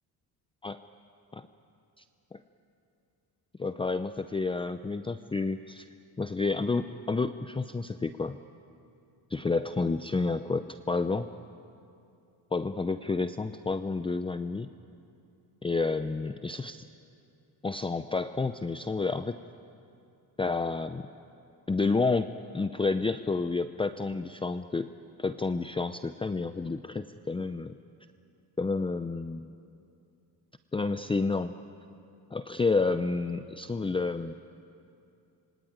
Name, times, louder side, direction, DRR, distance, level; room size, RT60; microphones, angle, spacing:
voice 1, 3.6-5.9 6.2-8.4 9.3-11.3 12.5-14.7 15.6-16.8 17.6-19.4 20.4-21.1 21.7-24.9 25.2-27.8 28.6-29.5 30.7-31.5 32.3-34.3, left 3 dB, 15° left, 11 dB, 0.6 m, -30 dB
26.5 x 23.5 x 9.5 m, 2.6 s
cardioid pair, 105°, 40 cm